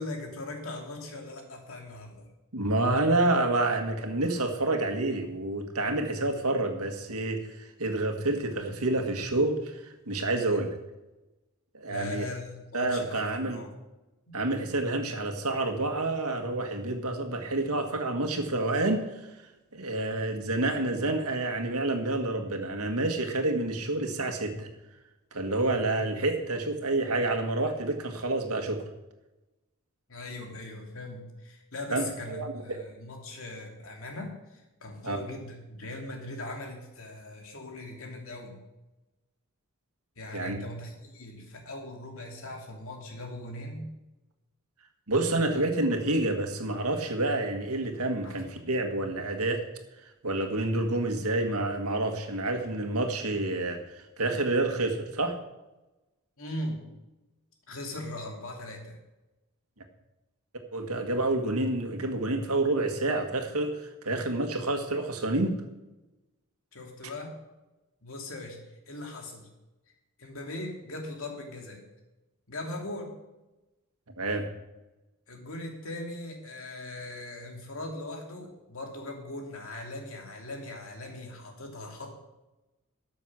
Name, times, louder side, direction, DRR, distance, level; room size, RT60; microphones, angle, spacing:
voice 1, 0.0-2.3 10.3-10.7 11.9-13.7 30.1-38.6 40.2-43.9 45.4-45.6 48.2-48.4 56.4-56.8 57.7-59.0 66.7-67.3 68.0-68.6 68.9-69.5 70.2-71.8 72.5-73.1 75.3-82.3, left 1 dB, 65° left, 2 dB, 2.5 m, -40 dB
voice 2, 2.5-10.8 11.7-12.3 12.7-13.6 14.3-19.1 19.7-24.7 25.3-28.8 31.9-32.8 35.0-35.2 40.3-40.6 45.1-49.6 50.2-55.4 60.7-65.6 74.2-74.5, right 2 dB, 80° right, 4 dB, 1.8 m, -28 dB
13.0 x 7.4 x 6.1 m, 1.0 s
head